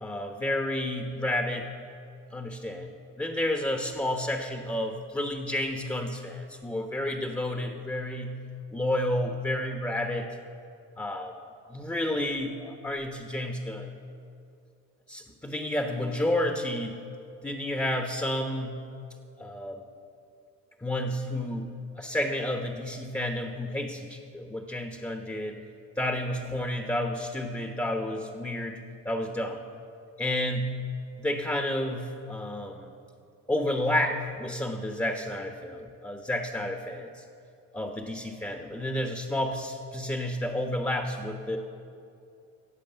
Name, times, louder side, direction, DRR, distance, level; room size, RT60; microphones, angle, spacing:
voice 1, 0.0-1.7 2.3-2.9 3.2-8.4 8.7-10.3 11.0-11.3 11.7-13.9 15.1-17.0 17.4-18.8 19.4-19.8 20.8-21.7 22.0-25.6 26.0-28.8 29.0-29.6 30.2-30.7 31.2-32.9 33.5-37.2 37.7-41.6, left 1 dB, 10° left, 4 dB, 1.1 m, -30 dB
14.5 x 8.4 x 8.1 m, 2.7 s
cardioid pair, 90°, 30 cm